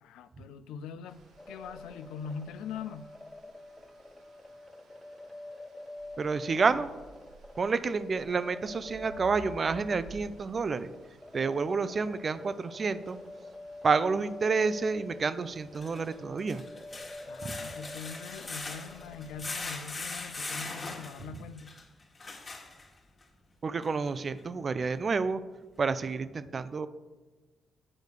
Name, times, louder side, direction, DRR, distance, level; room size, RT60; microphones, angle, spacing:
voice 1, 0.0-1.2 1.5-3.2 17.3-21.8, left 6 dB, 90° left, 0.4 m, -42 dB
sound 1, 1.1-19.4, right 2 dB, 85° right, 2.1 m, -56 dB
sound 2, 1.4-19.8, left 2 dB, 10° left, 0.4 m, -47 dB
voice 2, 6.2-6.9 7.6-10.9 11.3-13.2 13.8-16.6 17.4-17.6 23.6-25.4 25.8-26.9, right 4 dB, 45° right, 0.5 m, -29 dB
sound 3, 13.1-13.2 15.6-23.2 23.8-23.9 24.4-24.5, left 3 dB, 35° left, 1.7 m, -41 dB
8.5 x 5.0 x 6.5 m
cardioid pair, 75°, 0 cm